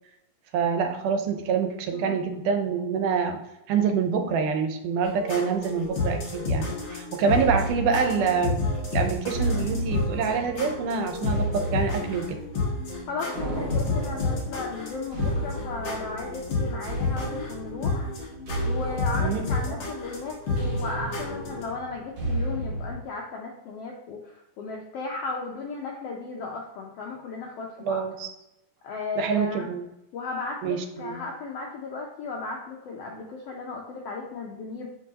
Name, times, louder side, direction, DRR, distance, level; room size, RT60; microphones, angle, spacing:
voice 1, 0.5-3.4 3.7-8.6 8.9-12.4 19.2-19.8 27.8-28.3 29.2-29.9 30.6-31.2, right 6 dB, 85° right, 6 dB, 2.3 m, -26 dB
sound 1, 5.0-21.6, left 3 dB, 50° left, 1.5 m, -30 dB
sound 2, 7.4-23.0, right 1 dB, 55° right, 1.4 m, -33 dB
voice 2, 13.1-18.1 18.6-28.0 28.8-29.8 30.1-34.9, left 3 dB, 80° left, 0 dB, 1.4 m, -35 dB
7.7 x 4.5 x 2.8 m, 0.89 s
omnidirectional pair, 3.5 m